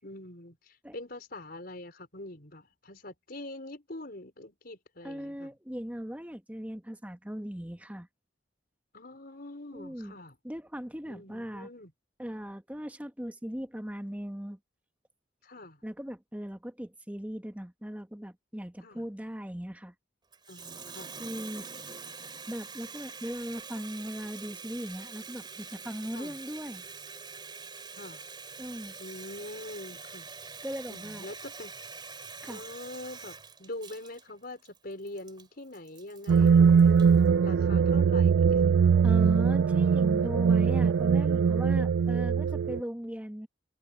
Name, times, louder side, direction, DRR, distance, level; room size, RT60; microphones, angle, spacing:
voice 1, 0.0-5.5 8.9-10.4 11.1-11.9 15.4-15.8 18.8-19.0 20.5-21.2 26.1-26.4 27.9-28.2 29.0-30.3 30.9-31.7 32.5-37.0 37.4-38.6, left 1 dB, 50° left, 5.1 m, -44 dB
voice 2, 5.0-8.1 9.7-10.1 10.4-11.7 12.2-14.6 15.8-19.9 21.2-21.7 22.5-26.8 28.6-28.9 30.6-31.2 32.4-32.6 39.0-43.5, equal, 10° right, 1.1 m, -38 dB
Water tap faucet, 20.3-37.2, right 5 dB, 25° right, 3.5 m, -45 dB
sound 1, 36.3-42.8, right 6 dB, 85° right, 0.3 m, -22 dB
head